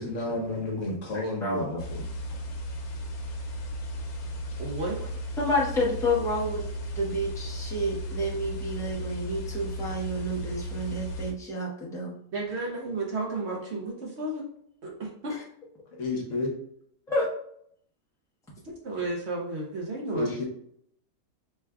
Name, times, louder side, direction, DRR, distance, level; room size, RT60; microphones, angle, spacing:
voice 1, 0.0-2.0 15.9-16.5 20.1-20.4, left 2 dB, 60° left, 0 dB, 1.2 m, -31 dB
voice 2, 1.1-1.6 5.4-6.6 6.9-12.1 17.1-17.3, equal, 5° left, -4 dB, 0.6 m, -29 dB
sound 1, 1.8-11.3, equal, 85° left, 1.2 m, -35 dB
voice 3, 4.6-5.0 12.3-14.4 14.8-15.4 18.8-20.4, right 2 dB, 55° right, -1 dB, 0.9 m, -32 dB
4.6 x 3.2 x 2.3 m, 0.67 s
omnidirectional pair, 1.5 m